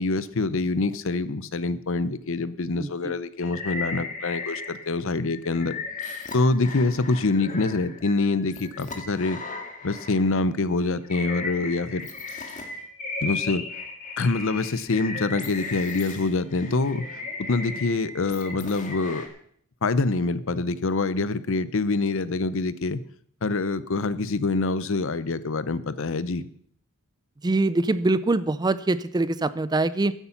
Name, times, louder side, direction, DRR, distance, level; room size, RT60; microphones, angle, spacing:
voice 1, 0.0-5.7 6.3-9.4 9.8-12.1 13.2-13.6 14.2-17.1 17.5-19.3 19.8-23.0 23.4-26.5, left 3 dB, 65° left, 15 dB, 0.7 m, -25 dB
sound 1, 3.4-5.0 5.2-10.4 10.9-19.3, left 3 dB, 40° left, 1.9 m, -36 dB
voice 2, 27.4-30.1, right 2 dB, 20° right, 16 dB, 0.4 m, -23 dB
14.5 x 8.2 x 5.9 m, 0.65 s
head